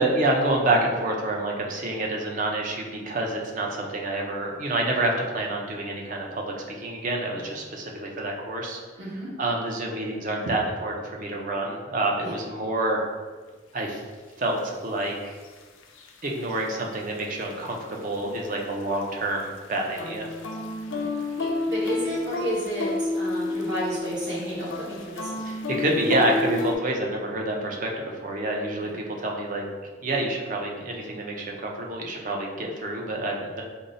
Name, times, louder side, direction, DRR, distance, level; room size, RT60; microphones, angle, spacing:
voice 1, 0.0-8.8 9.4-13.0 13.7-14.0 14.4-15.4 16.2-20.3 25.4-29.6 30.0-33.6, right 1 dB, 40° right, 0 dB, 0.5 m, -27 dB
voice 2, 9.0-9.3 12.2-12.4 20.9-21.1 21.4-25.6 28.8-29.0, equal, 65° right, -8 dB, 1.2 m, -32 dB
sound 1, 13.8-13.9 14.6-14.7 15.4-16.6 16.9-17.2 17.5-19.1 19.4-26.7, left 2 dB, 85° left, 0.4 m, -30 dB
5.2 x 2.0 x 2.5 m, 1.4 s
head